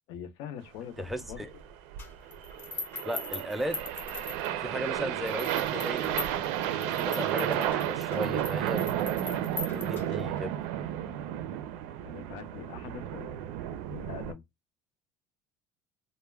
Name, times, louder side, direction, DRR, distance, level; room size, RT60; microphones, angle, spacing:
voice 1, 0.1-1.4 12.0-14.4, left 8 dB, 70° left, 0.6 m, -43 dB
voice 2, 1.0-1.5 3.0-3.8 4.4-6.2 6.8-8.9 9.7-10.5, equal, ahead, 0.3 m, -36 dB
sound 1, 1.0-14.3, right 11 dB, 80° right, 0.4 m, -32 dB
sound 2, 2.0-4.8 5.3-10.4, left 3 dB, 25° left, 0.7 m, -41 dB
2.3 x 2.1 x 3.2 m
cardioid pair, 155°, 8 cm